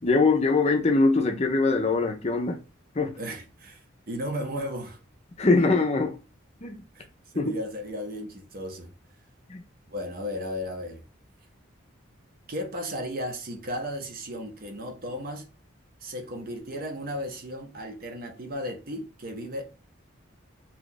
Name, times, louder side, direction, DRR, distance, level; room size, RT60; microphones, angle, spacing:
voice 1, 0.0-2.6 3.0-3.2 5.4-6.1 6.6-6.8 7.4-7.5 9.5-9.6, left 3 dB, 30° left, 0.5 m, -22 dB
voice 2, 3.2-5.0 6.9-7.1 7.3-8.9 9.9-11.0 12.5-15.5 16.0-19.6, equal, 45° right, 0.7 m, -35 dB
2.8 x 2.4 x 3.8 m
head